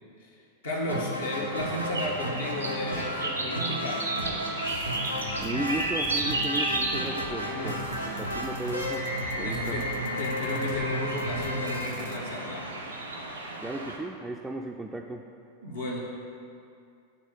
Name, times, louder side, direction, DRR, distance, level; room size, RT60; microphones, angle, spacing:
voice 1, 0.2-4.1 7.3-7.8 9.4-12.7 15.6-16.0, left 1 dB, 70° left, -4 dB, 1.0 m, -34 dB
sound 1, 0.9-12.7, equal, 90° left, 0.8 m, -33 dB
sound 2, 1.4-14.0, right 2 dB, 80° right, 0.8 m, -34 dB
sound 3, 4.2-12.2, left 6 dB, 55° left, 0.5 m, -44 dB
voice 2, 5.3-7.7 8.2-9.1 9.4-9.8 13.6-15.3, right 2 dB, 10° right, 1 dB, 0.3 m, -35 dB
8.0 x 4.2 x 4.6 m, 2.4 s
figure-of-eight pair, 90°, 0 cm